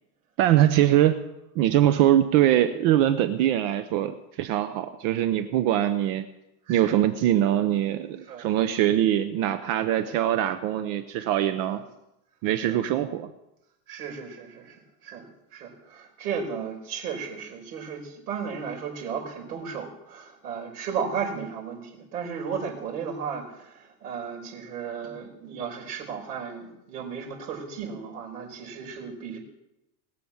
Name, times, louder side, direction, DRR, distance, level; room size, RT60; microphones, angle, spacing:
voice 1, 0.4-1.2 1.5-6.3 6.7-11.8 12.4-13.3, right 12 dB, 50° right, 10 dB, 0.8 m, -22 dB
voice 2, 6.7-7.0 8.3-8.5 10.0-10.2 11.7-11.8 12.6-12.8 13.9-14.8 15.0-29.4, right 6 dB, 85° right, 0 dB, 5.4 m, -35 dB
20.5 x 6.9 x 7.2 m, 0.88 s
supercardioid pair, 160°, 45 cm